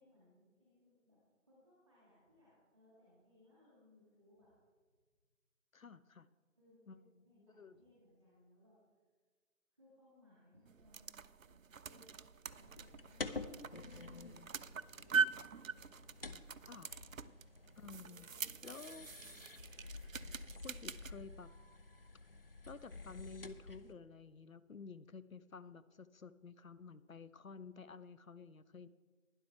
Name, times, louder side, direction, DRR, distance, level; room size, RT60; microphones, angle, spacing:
voice 1, 0.0-4.5 6.6-8.8 9.7-12.2 12.5-15.6 17.8-18.6 18.9-19.5 20.5-20.7, left 1 dB, 5° left, -8 dB, 1.3 m, -68 dB
voice 2, 5.7-6.3 6.9-7.1 7.4-7.8 16.7-17.0 17.8-18.3 18.6-19.1 20.6-21.5 22.7-28.9, left 5 dB, 80° left, 14 dB, 0.8 m, -52 dB
sound 1, 10.7-21.1, right 6 dB, 75° right, 0.6 m, -43 dB
sound 2, 12.5-23.9, left 3 dB, 45° left, 0.7 m, -50 dB
12.0 x 10.5 x 4.4 m, 1.5 s
figure-of-eight pair, 160°, 40 cm